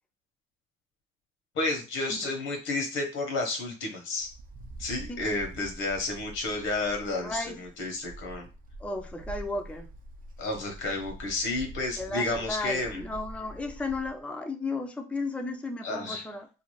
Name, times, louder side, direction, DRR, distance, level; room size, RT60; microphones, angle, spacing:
voice 1, 1.5-4.3 4.8-8.5 10.4-13.0 15.8-16.3, left 2 dB, 80° left, 3 dB, 0.9 m, -31 dB
Wind, 4.2-14.2, right 1 dB, 45° right, 0.6 m, -45 dB
voice 2, 7.1-7.6 8.8-9.9 12.0-16.5, left 2 dB, 5° left, 4 dB, 0.4 m, -34 dB
2.5 x 2.4 x 3.0 m, 0.30 s
cardioid pair, 90°, 20 cm